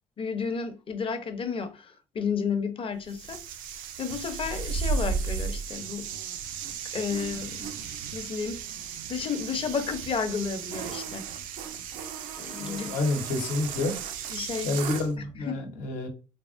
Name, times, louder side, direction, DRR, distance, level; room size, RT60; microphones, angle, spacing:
voice 1, 0.2-3.4 4.0-6.1 6.9-7.7 8.1-8.6 9.1-11.2 12.4-12.9 14.3-14.8 15.5-15.7, left 6 dB, 40° left, 0.7 m, -32 dB
sound 1, 3.1-15.1, right 6 dB, 85° right, 0.4 m, -35 dB
voice 2, 12.6-14.0 14.6-16.1, left 2 dB, 80° left, 0.9 m, -29 dB
3.4 x 2.0 x 2.5 m
supercardioid pair, 75°, 14 cm